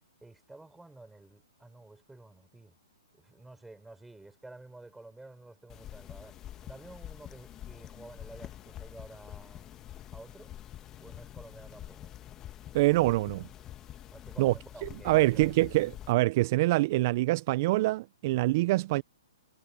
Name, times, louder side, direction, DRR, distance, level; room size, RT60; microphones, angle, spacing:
voice 1, 0.2-2.8 3.1-6.4 6.6-9.7 10.1-10.6 11.0-12.1 14.1-15.7 18.2-18.3, right 2 dB, 5° right, 5.6 m, -51 dB
sound 1, 5.7-16.1, left 12 dB, 20° left, 1.3 m, -46 dB
voice 2, 12.7-13.4 14.4-14.5 14.8-19.0, right 19 dB, 40° right, 0.5 m, -25 dB
hypercardioid pair, 145°, 2 cm